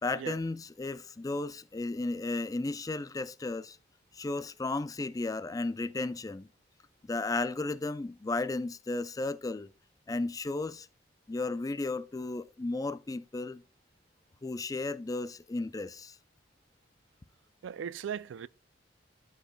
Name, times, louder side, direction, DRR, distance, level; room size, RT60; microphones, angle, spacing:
voice 1, 0.0-3.8 4.1-6.5 7.1-9.7 10.1-10.9 11.3-13.6 14.4-16.2, left 2 dB, 20° left, 0.4 m, -34 dB
voice 2, 17.6-18.5, right 8 dB, 75° right, 0.3 m, -38 dB
12.5 x 5.5 x 2.2 m
head